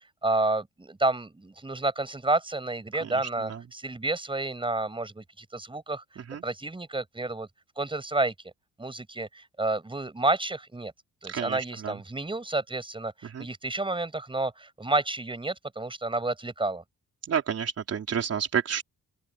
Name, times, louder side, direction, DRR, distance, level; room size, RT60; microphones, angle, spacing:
voice 1, 0.2-7.5 7.8-8.5 8.8-10.9 11.2-16.8, right 2 dB, 15° right, 5.9 m, -30 dB
voice 2, 11.3-11.9 13.2-13.5 17.3-18.8, right 7 dB, 55° right, 4.3 m, -30 dB
open air
cardioid pair, 90°, 30 cm